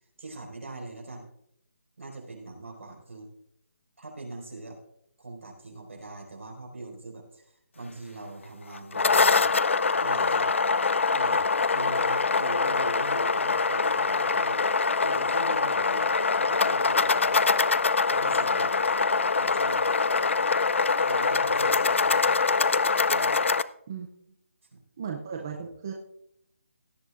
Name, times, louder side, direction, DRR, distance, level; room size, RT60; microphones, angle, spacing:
voice 1, 0.2-1.3 2.0-3.3 4.0-4.8 5.2-9.5 10.0-10.5 11.1-14.6 15.0-18.7 19.4-19.9 21.0-22.4 23.1-23.4 24.7-24.8 25.5-25.7, right 2 dB, 65° right, -1 dB, 5.0 m, -42 dB
sound 1, 8.7-23.6, left 4 dB, 60° left, 0.4 m, -24 dB
voice 2, 25.0-25.9, right 7 dB, 15° right, 2 dB, 0.5 m, -35 dB
17.0 x 11.0 x 2.5 m, 0.73 s
hypercardioid pair, 175°, 7 cm